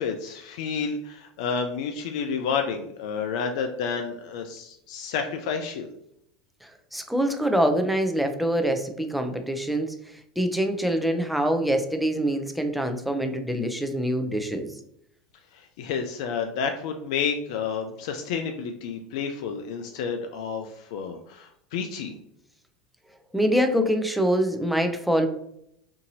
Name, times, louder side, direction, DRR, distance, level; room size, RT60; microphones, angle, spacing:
voice 1, 0.0-5.9 15.5-22.1, left 6 dB, 70° left, 4 dB, 0.3 m, -30 dB
voice 2, 6.9-9.9 10.4-14.7 23.3-25.3, equal, ahead, 5 dB, 0.4 m, -24 dB
2.7 x 2.6 x 2.6 m, 0.74 s
hypercardioid pair, 90°, 4 cm